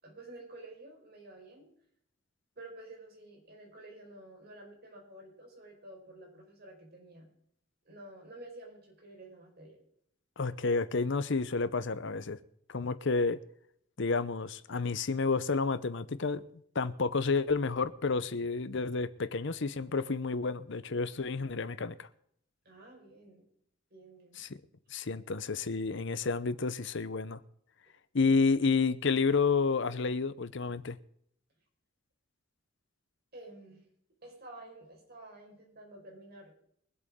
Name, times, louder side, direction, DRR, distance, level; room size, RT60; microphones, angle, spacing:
voice 1, 0.0-1.7 2.5-7.3 7.8-9.8 22.6-23.4 23.9-24.4 33.3-33.8 34.2-36.5, right 2 dB, 50° right, -1 dB, 5.0 m, -50 dB
voice 2, 10.4-12.4 12.7-13.4 14.0-16.4 16.7-22.1 24.4-24.5 24.9-27.4 28.1-31.0, left 4 dB, 65° left, 15 dB, 0.8 m, -30 dB
24.0 x 8.2 x 3.7 m, 0.69 s
head